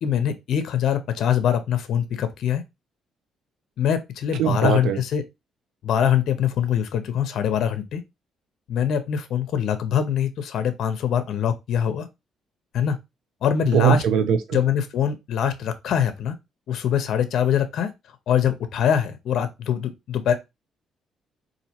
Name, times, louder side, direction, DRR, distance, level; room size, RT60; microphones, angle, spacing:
voice 1, 0.0-2.6 3.8-5.2 5.8-8.0 8.7-12.1 12.7-13.0 13.4-14.0 14.5-16.3 16.7-17.9 18.3-20.3, left 9 dB, 65° left, 0.6 m, -23 dB
voice 2, 4.4-5.0 13.7-14.4, right 7 dB, 85° right, 0.6 m, -19 dB
4.1 x 2.6 x 2.8 m
cardioid pair, 125°, 0 cm